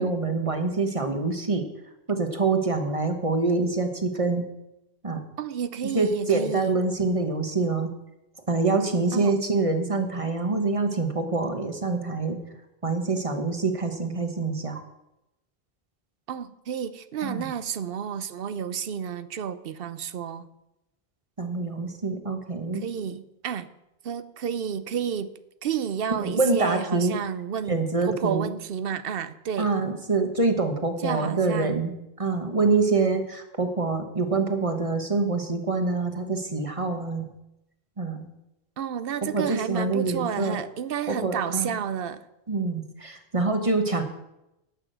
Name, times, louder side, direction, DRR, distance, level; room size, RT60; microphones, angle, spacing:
voice 1, 0.0-1.6 2.1-4.5 5.0-5.2 5.9-7.9 8.5-12.4 12.8-14.8 17.2-17.4 21.4-22.8 26.2-27.2 27.7-28.5 29.6-31.9 32.2-37.3 38.0-38.3 39.3-40.6 41.1-41.7 42.5-44.0, right 3 dB, 35° right, 1.2 m, -25 dB
voice 2, 5.4-6.7 9.1-9.4 16.3-20.5 22.7-23.7 24.0-25.3 25.6-29.7 31.0-31.8 38.8-42.3, right 8 dB, 65° right, 0.8 m, -31 dB
11.0 x 6.0 x 7.9 m
omnidirectional pair, 1.0 m